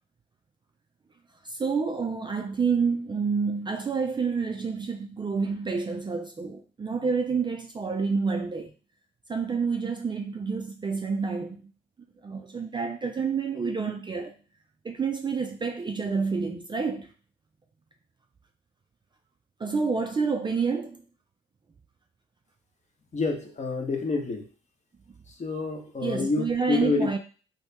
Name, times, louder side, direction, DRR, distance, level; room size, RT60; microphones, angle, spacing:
voice 1, 1.4-8.7 9.3-11.7 12.2-14.3 14.8-17.1 19.6-21.0 26.0-27.2, right 5 dB, 25° right, 0.4 m, -28 dB
voice 2, 23.1-24.5 25.3-27.1, left 3 dB, 35° left, 0.9 m, -28 dB
2.8 x 2.8 x 3.3 m
cardioid pair, 90°, 20 cm